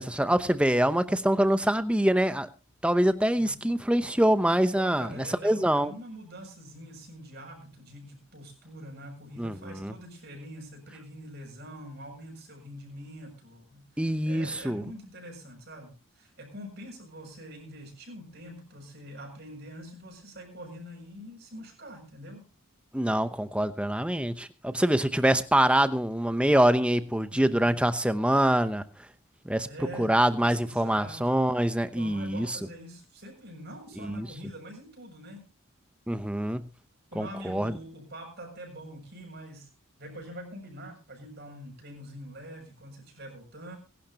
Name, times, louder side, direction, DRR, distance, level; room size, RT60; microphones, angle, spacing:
voice 1, 0.0-2.5 2.8-5.9 9.4-9.9 14.0-14.8 22.9-28.8 29.4-29.7 30.0-32.6 34.0-34.3 36.1-36.6 37.2-37.7, right 1 dB, 5° right, 0.8 m, -25 dB
voice 2, 4.6-13.8 14.2-22.5 27.3-27.8 29.6-31.3 31.8-35.4 37.1-39.7 40.0-43.8, equal, 50° right, 7.0 m, -44 dB
23.0 x 12.0 x 2.9 m
head